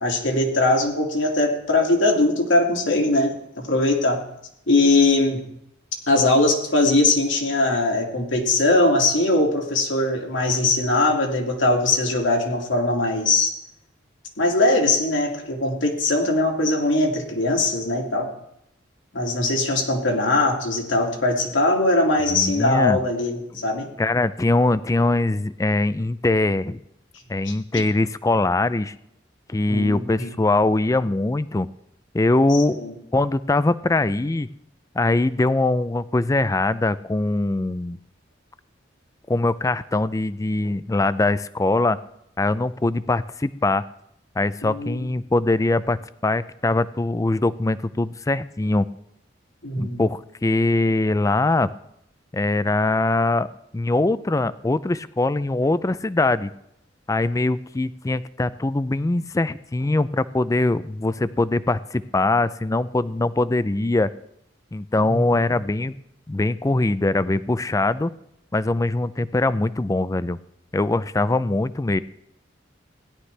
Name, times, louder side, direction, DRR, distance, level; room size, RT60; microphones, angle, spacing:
voice 1, 0.0-4.2 4.7-5.4 6.1-13.5 14.4-18.3 19.1-23.9 27.5-27.8 29.7-30.3 32.5-32.9 44.6-45.0 49.6-50.0 65.1-65.5, left 2 dB, 80° left, 1 dB, 2.3 m, -21 dB
voice 2, 22.3-23.0 24.0-26.8 27.3-28.9 29.5-31.7 32.1-32.8 33.1-34.5 35.0-38.0 39.3-42.0 42.4-43.8 44.4-48.9 49.8-51.7 52.3-53.5 53.7-56.5 57.1-64.1 64.7-65.9 66.3-68.1 68.5-70.4 70.7-72.0, left 2 dB, 15° left, 16 dB, 0.4 m, -22 dB
16.5 x 11.5 x 3.3 m, 0.77 s
head